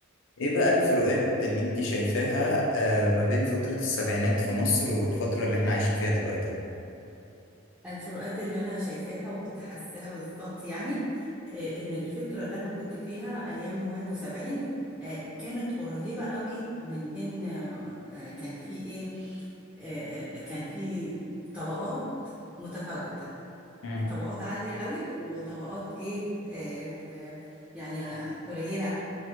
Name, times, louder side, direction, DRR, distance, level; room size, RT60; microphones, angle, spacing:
voice 1, 0.4-6.4 23.8-24.1, left 1 dB, 70° left, -3 dB, 0.5 m, -26 dB
voice 2, 7.8-14.7 15.0-19.4 19.8-21.2 21.5-22.1 22.6-23.3 23.9-27.4 27.7-28.9, equal, 5° right, -13 dB, 0.4 m, -35 dB
2.4 x 2.3 x 2.8 m, 2.8 s
head